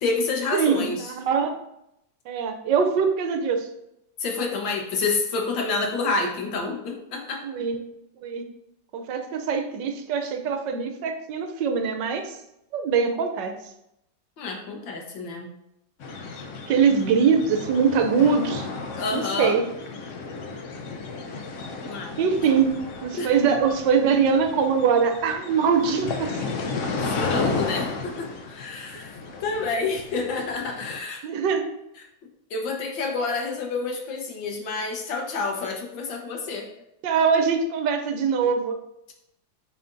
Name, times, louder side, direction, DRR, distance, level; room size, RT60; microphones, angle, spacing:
voice 1, 0.0-1.1 4.2-7.4 14.4-15.5 19.0-19.6 21.8-22.1 23.1-23.3 27.0-29.1 29.4-31.2 32.5-36.7, left 3 dB, 80° left, 2 dB, 1.8 m, -28 dB
voice 2, 0.5-1.6 2.3-3.7 6.0-6.1 7.4-7.8 8.2-8.4 8.9-12.4 12.7-13.5 16.7-18.7 19.1-19.6 22.2-22.7 23.0-26.4 31.2-31.8 37.0-38.8, right 6 dB, 75° right, 6 dB, 1.3 m, -23 dB
sound 1, 16.0-31.0, left 3 dB, 65° left, 0.7 m, -33 dB
8.9 x 4.3 x 2.6 m, 0.83 s
omnidirectional pair, 2.0 m